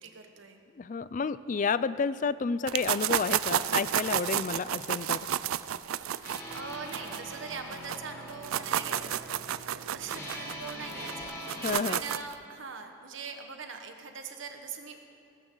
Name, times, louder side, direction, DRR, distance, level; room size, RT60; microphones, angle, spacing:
voice 1, 0.0-0.6 6.1-15.0, right 5 dB, 65° right, 5 dB, 1.3 m, -42 dB
voice 2, 0.8-5.2 11.6-12.0, left 5 dB, 40° left, 15 dB, 0.3 m, -30 dB
sound 1, 2.7-8.0 8.3-12.3, right 10 dB, 85° right, 0.4 m, -31 dB
sound 2, 6.2-11.7, equal, 15° left, 2.4 m, -43 dB
19.5 x 15.0 x 3.9 m, 2.8 s
head